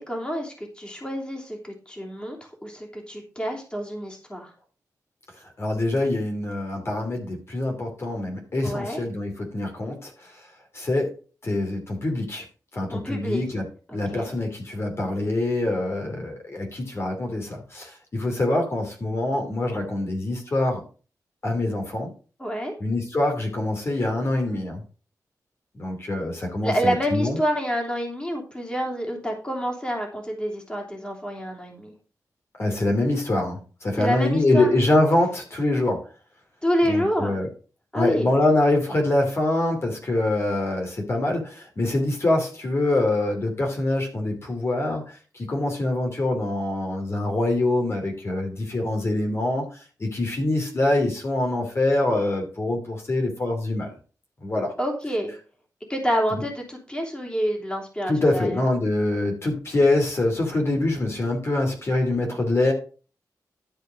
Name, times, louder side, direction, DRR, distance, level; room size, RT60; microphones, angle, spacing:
voice 1, 0.0-4.5 8.6-9.0 12.9-13.4 13.9-14.3 22.4-22.7 26.6-31.9 33.9-34.7 36.6-37.4 37.9-38.4 54.8-55.3 55.9-58.6, equal, 15° left, 0 dB, 3.1 m, -28 dB
voice 2, 5.6-10.1 10.7-11.1 11.4-12.4 12.7-13.6 13.9-20.8 21.4-22.1 22.8-24.8 25.7-27.4 32.6-36.0 36.8-37.5 37.9-49.6 50.0-53.9 54.4-54.7 58.1-62.7, left 2 dB, 45° left, 2 dB, 2.7 m, -24 dB
12.0 x 5.2 x 5.0 m, 0.37 s
wide cardioid pair, 100°, 6 cm